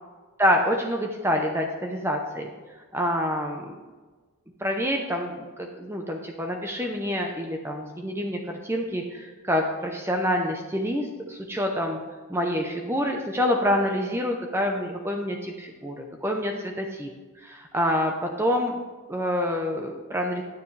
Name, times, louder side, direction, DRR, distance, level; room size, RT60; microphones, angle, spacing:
voice 1, 0.4-2.5 2.9-3.8 4.6-12.0 12.3-17.1 17.4-18.8 19.1-20.4, equal, 10° right, 2 dB, 0.6 m, -27 dB
9.5 x 9.3 x 3.3 m, 1.3 s
head